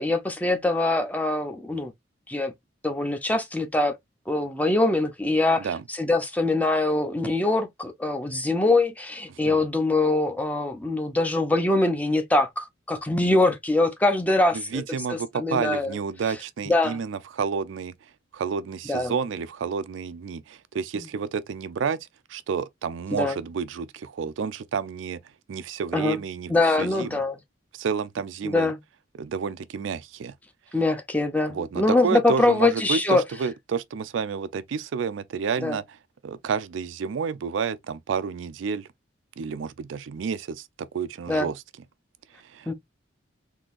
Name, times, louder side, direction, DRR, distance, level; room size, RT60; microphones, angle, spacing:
voice 1, 0.0-1.9 2.3-2.5 2.8-4.0 4.3-14.8 15.1-16.0 16.7-17.0 18.9-19.1 20.9-21.0 23.1-23.4 25.9-26.2 26.5-27.4 28.4-28.8 30.7-33.2 35.6-35.8 41.3-41.5 42.7-42.8, left 2 dB, 10° left, 0.6 m, -23 dB
voice 2, 14.5-17.9 18.3-25.2 25.5-26.5 26.8-27.2 27.7-28.7 29.2-30.3 31.5-35.8 36.2-38.9 39.4-41.6 42.5-42.7, right 6 dB, 80° right, 0.4 m, -30 dB
3.7 x 2.7 x 2.4 m
head